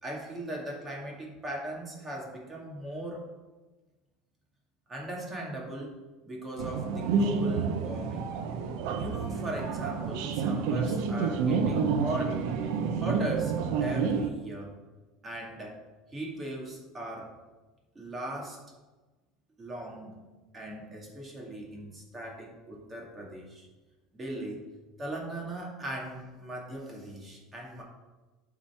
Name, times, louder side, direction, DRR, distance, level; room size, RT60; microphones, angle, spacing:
voice 1, 0.0-3.3 4.9-6.0 6.2-8.4 8.9-12.4 13.0-13.6 13.8-14.7 15.2-15.8 16.1-17.4 18.0-18.6 19.6-20.3 20.5-23.7 24.1-24.7 25.0-27.8, right 1 dB, 20° right, -2 dB, 2.0 m, -38 dB
sound 1, 6.6-14.3, right 5 dB, 70° right, 0.7 m, -29 dB
11.5 x 4.0 x 4.4 m, 1.2 s
cardioid pair, 145°, 0 cm